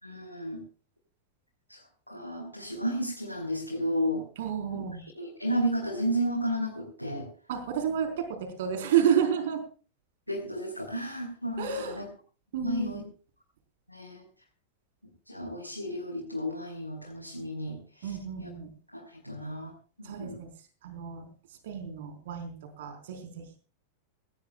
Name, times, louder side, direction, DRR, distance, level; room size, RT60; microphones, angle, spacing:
voice 1, 0.0-0.6 1.7-1.8 2.1-4.2 4.7-4.8 5.2-7.3 10.3-12.1 12.6-13.0 13.9-14.2 15.3-18.1 18.4-18.5 18.9-19.7 20.0-20.4, equal, 90° left, -3 dB, 5.4 m, -32 dB
voice 2, 4.4-5.0 7.5-9.6 11.6-12.0 12.5-13.0 18.0-18.7 20.0-20.5 20.8-21.3 21.6-23.5, right 8 dB, 55° right, 6 dB, 4.5 m, -30 dB
20.5 x 18.0 x 2.4 m, 0.38 s
figure-of-eight pair, 90°, 0 cm